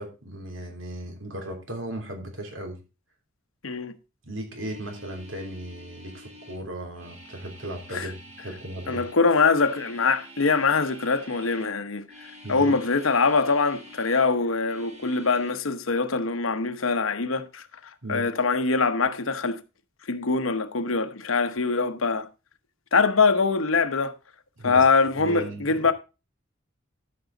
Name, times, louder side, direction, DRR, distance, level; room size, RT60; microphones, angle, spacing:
voice 1, 0.0-2.8 4.2-8.2 8.4-9.0 12.4-12.7 18.0-18.3 24.6-24.8 25.2-25.9, right 1 dB, 70° right, 3.1 m, -36 dB
sound 1, 4.5-11.7 12.0-14.3 14.6-15.5, right 1 dB, 35° right, 3.1 m, -48 dB
voice 2, 8.9-12.0 12.5-17.6 18.1-19.6 20.1-22.3 22.9-24.1 24.6-25.9, left 4 dB, 85° left, 1.0 m, -23 dB
13.0 x 6.2 x 3.9 m
head